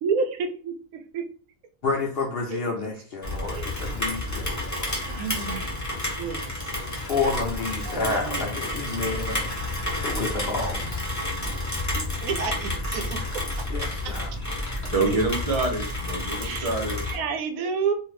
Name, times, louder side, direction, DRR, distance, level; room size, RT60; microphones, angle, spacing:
voice 1, 0.0-1.2 2.5-2.6 3.5-3.7 5.1-5.7 6.2-6.7 7.8-8.6 12.2-13.9 16.4-16.7 17.0-17.9, right 5 dB, 85° right, 1.0 m, -30 dB
voice 2, 1.8-4.9 7.1-9.5 10.0-11.1 13.7-14.0, left 3 dB, 65° left, 0.6 m, -29 dB
Rain, 3.2-17.2, left 1 dB, 20° left, 0.5 m, -30 dB
voice 3, 14.9-17.0, right 3 dB, 40° right, 0.5 m, -26 dB
2.7 x 2.4 x 3.1 m
omnidirectional pair, 1.5 m